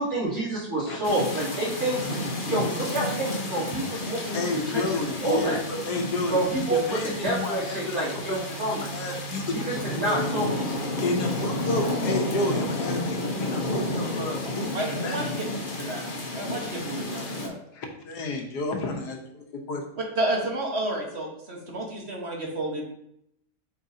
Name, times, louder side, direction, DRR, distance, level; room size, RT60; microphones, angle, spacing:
voice 1, 0.0-2.0 2.5-5.6 6.3-6.8 7.2-8.8 9.5-10.7, right 2 dB, 60° right, -11 dB, 3.3 m, -28 dB
sound 1, 1.0-17.5, left 1 dB, 35° left, 1.0 m, -31 dB
voice 2, 4.3-9.5 9.9-10.3 11.0-15.2 17.7-19.2 19.7-19.8, left 2 dB, 75° left, 2 dB, 1.6 m, -31 dB
voice 3, 14.7-15.4 15.8-16.0 16.3-17.5 20.0-22.9, right 1 dB, 40° right, 0 dB, 1.4 m, -31 dB
7.7 x 4.7 x 2.8 m, 0.75 s
omnidirectional pair, 1.8 m